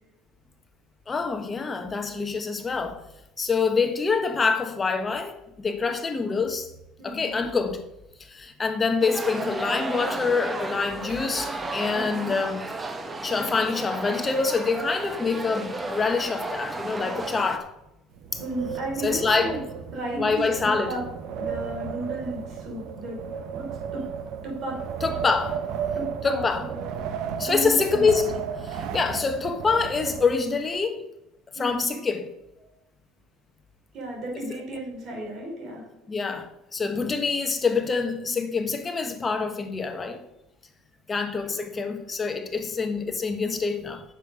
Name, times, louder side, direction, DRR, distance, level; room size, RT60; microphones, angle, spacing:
voice 1, 1.1-3.0 3.4-6.7 7.0-7.8 8.2-12.6 13.2-17.7 19.0-19.5 20.2-20.9 25.0-25.6 26.2-26.6 27.4-28.3 28.6-31.0 31.5-32.3 36.1-40.2 41.1-44.0, left 4 dB, 20° left, 1.1 m, -26 dB
voice 2, 3.6-3.9 7.0-7.4 11.9-12.3 18.4-19.7 19.9-21.0 21.4-23.2 23.5-23.7 23.9-24.8 26.0-26.9 27.4-28.0 31.6-32.0 32.6-32.7 33.9-35.8 38.2-38.5, right 1 dB, 45° right, 3.8 m, -34 dB
sound 1, 9.0-17.6, right 2 dB, 15° right, 0.9 m, -33 dB
Wind, 18.1-30.8, right 7 dB, 60° right, 0.8 m, -34 dB
9.1 x 7.1 x 5.0 m
cardioid pair, 150°, 0 cm